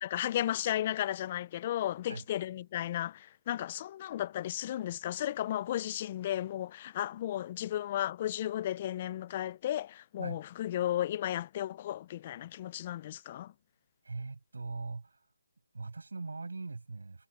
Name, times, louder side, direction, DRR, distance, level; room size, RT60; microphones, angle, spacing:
voice 1, 0.0-13.5, left 12 dB, 25° left, 0.3 m, -34 dB
voice 2, 14.0-15.3 15.7-17.3, right 3 dB, 80° right, 6.5 m, -41 dB
hypercardioid pair, 165°, 0 cm